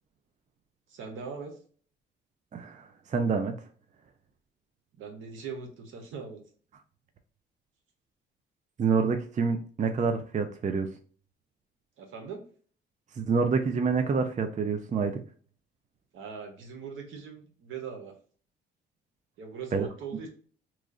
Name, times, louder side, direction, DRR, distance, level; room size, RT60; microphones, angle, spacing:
voice 1, 0.9-1.6 4.9-6.4 12.0-12.4 16.1-18.1 19.4-20.3, right 6 dB, 80° right, 3 dB, 1.0 m, -40 dB
voice 2, 2.5-3.5 8.8-10.9 13.2-15.2 19.7-19.9, right 5 dB, 40° right, 6 dB, 0.5 m, -27 dB
3.1 x 2.4 x 3.7 m, 0.44 s
cardioid pair, 90°, 20 cm